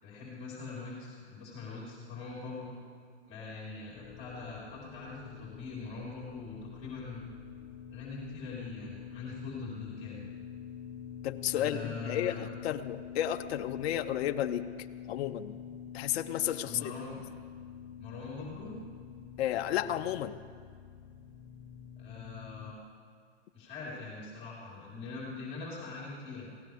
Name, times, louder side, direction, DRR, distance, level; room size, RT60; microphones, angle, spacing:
voice 1, 0.0-2.8 3.3-7.2 7.9-10.3 11.5-12.5 16.6-17.1 18.0-18.7 22.0-22.8 23.5-26.5, left 3 dB, 15° left, -5 dB, 4.2 m, -42 dB
sound 1, 3.9-22.7, left 8 dB, 30° left, 1.1 m, -46 dB
voice 2, 11.2-14.7 15.1-15.5 15.9-16.9 19.4-20.3, left 11 dB, 60° left, 8 dB, 0.7 m, -32 dB
22.0 x 17.0 x 3.5 m, 2.1 s
hypercardioid pair, 120°, 35 cm